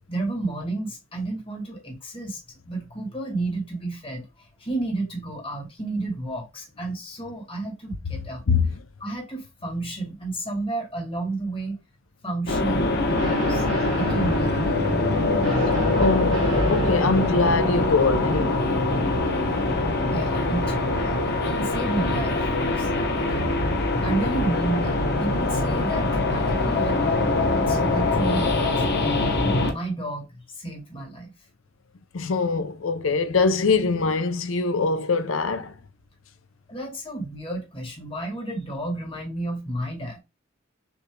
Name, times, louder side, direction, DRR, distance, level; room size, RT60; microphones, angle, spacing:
voice 1, 0.1-11.8 12.2-14.9 20.1-22.4 22.8-22.9 23.2-27.0 27.5-28.5 28.8-29.1 29.7-31.3 36.7-40.2, right 2 dB, 30° left, 1.7 m, -32 dB
sound 1, 12.5-29.7, left 2 dB, 55° left, 0.9 m, -23 dB
Guitar, 13.1-20.8, right 1 dB, 65° right, 2.2 m, -32 dB
voice 2, 16.0-18.7 32.1-35.7, left 4 dB, 85° left, 0.6 m, -23 dB
6.2 x 3.0 x 2.2 m
head